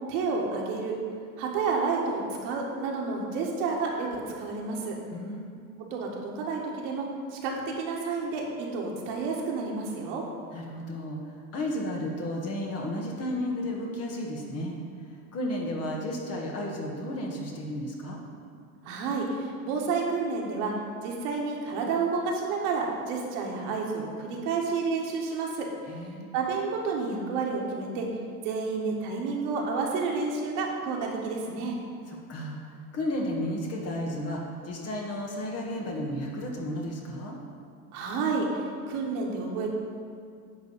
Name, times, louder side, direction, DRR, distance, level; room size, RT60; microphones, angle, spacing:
voice 1, 0.1-0.9 1.4-5.0 5.9-10.2 18.8-20.7 21.0-25.7 26.3-28.1 28.4-31.8 37.9-39.7, right 4 dB, 55° right, -1 dB, 1.9 m, -30 dB
voice 2, 5.1-5.6 10.5-14.7 15.3-18.2 25.9-26.3 32.1-37.4, left 1 dB, 35° left, -1 dB, 1.9 m, -33 dB
10.5 x 4.0 x 7.2 m, 2.2 s
hypercardioid pair, 85°, 44 cm